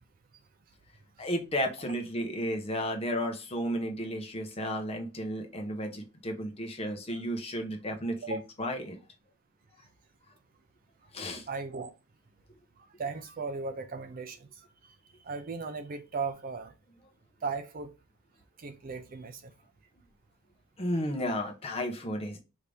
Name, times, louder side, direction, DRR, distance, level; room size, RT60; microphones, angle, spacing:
voice 1, 1.2-9.0 11.1-11.5 20.8-22.4, equal, 25° left, 0.8 m, -33 dB
voice 2, 11.5-11.9 12.8-16.7 17.4-17.9 18.6-19.5, right 4 dB, 40° right, 0.4 m, -37 dB
4.9 x 2.8 x 3.4 m
head